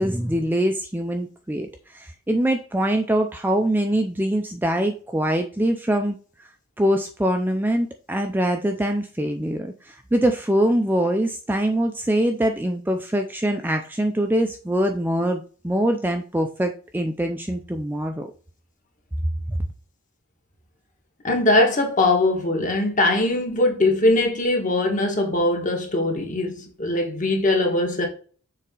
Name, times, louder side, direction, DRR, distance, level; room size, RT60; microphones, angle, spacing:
voice 1, 0.0-6.5 6.8-18.3 19.5-19.6, right 1 dB, 10° right, 0.4 m, -23 dB
voice 2, 21.2-28.1, left 2 dB, 35° left, 1.6 m, -21 dB
6.7 x 4.1 x 3.8 m
head